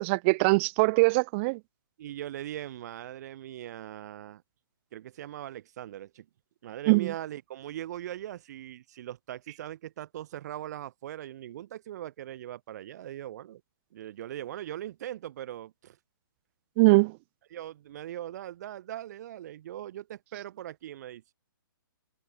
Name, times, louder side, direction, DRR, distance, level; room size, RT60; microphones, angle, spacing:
voice 1, 0.0-1.6 6.9-7.1 16.8-17.2, right 27 dB, 30° right, 1.1 m, -22 dB
voice 2, 2.0-4.4 4.9-6.3 6.6-13.6 13.9-16.0 17.5-21.2, right 12 dB, 50° right, 7.2 m, -40 dB
hypercardioid pair, 145°, 12 cm